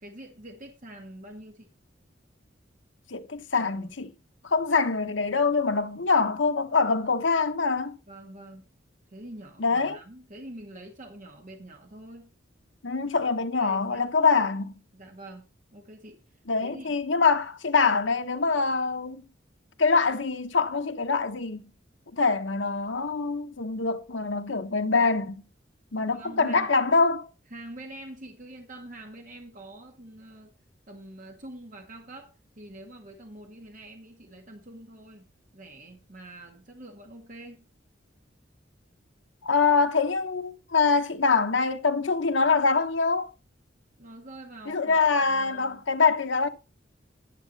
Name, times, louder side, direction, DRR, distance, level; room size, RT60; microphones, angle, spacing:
voice 1, 0.0-1.7 3.6-3.9 8.1-8.7 9.1-12.3 13.4-14.1 14.9-15.5 15.7-16.2 16.6-17.0 26.0-26.7 27.5-30.5 30.9-37.7 44.0-45.8, right 1 dB, 45° right, 1.8 m, -45 dB
voice 2, 3.1-4.1 4.4-8.0 9.6-10.0 12.8-14.7 16.5-19.2 19.8-21.6 22.1-25.4 25.9-27.3 39.4-43.3 44.7-46.5, left 4 dB, 85° left, 1.2 m, -24 dB
10.5 x 8.2 x 4.2 m
head